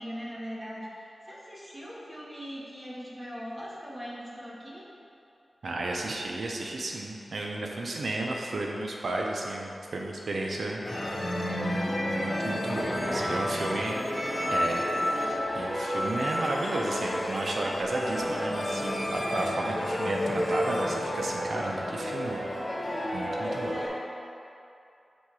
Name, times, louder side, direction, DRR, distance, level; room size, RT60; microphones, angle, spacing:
voice 1, 0.0-4.8 12.6-14.5 23.4-24.0, equal, 15° right, -6 dB, 1.5 m, -40 dB
voice 2, 5.6-10.8 11.2-11.3 12.1-14.0 14.5-14.8 15.2-22.5 23.1-23.8, right 2 dB, 75° right, 0 dB, 0.6 m, -33 dB
sound 1, 10.8-23.9, equal, 30° left, 1.4 m, -30 dB
7.1 x 3.8 x 4.7 m, 2.6 s
wide cardioid pair, 75°, 0 cm